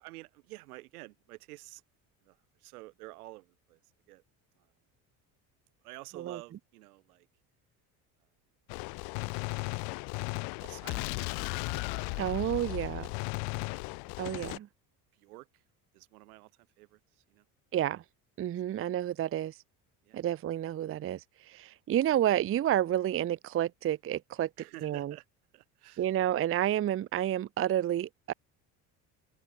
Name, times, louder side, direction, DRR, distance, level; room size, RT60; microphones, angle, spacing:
voice 1, 0.0-1.8 2.2-3.8 4.1-4.2 4.6-4.7 5.8-7.3 10.0-11.1 11.4-12.1 13.6-13.9 15.1-15.6 15.9-17.5 18.7-18.8 20.0-20.2 24.6-25.3 25.5-26.1, right 20 dB, 90° right, 5.6 m, -51 dB
Gunshot gunfire, 8.7-14.6, left 32 dB, 70° left, 0.6 m, -36 dB
voice 2, 12.2-13.1 14.2-14.7 17.7-18.0 18.4-19.5 20.1-21.2 21.5-24.5 24.8-25.1 26.0-28.3, right 11 dB, 30° right, 0.5 m, -30 dB
open air
supercardioid pair, 75°, 43 cm